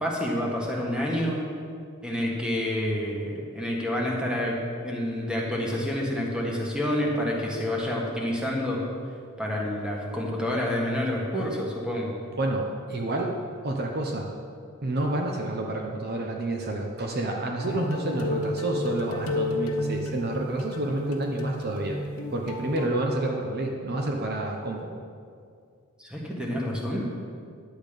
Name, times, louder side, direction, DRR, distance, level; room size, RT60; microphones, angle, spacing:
voice 1, 0.0-1.4 2.0-8.8 9.4-12.2 26.0-27.0, left 1 dB, 5° right, -3 dB, 1.6 m, -28 dB
voice 2, 12.4-13.3 13.6-14.3 14.8-22.0 22.3-24.9, right 2 dB, 45° right, 1 dB, 0.8 m, -29 dB
sound 1, 17.6-22.9, left 1 dB, 85° left, 1.3 m, -32 dB
10.5 x 8.0 x 5.2 m, 2.3 s
head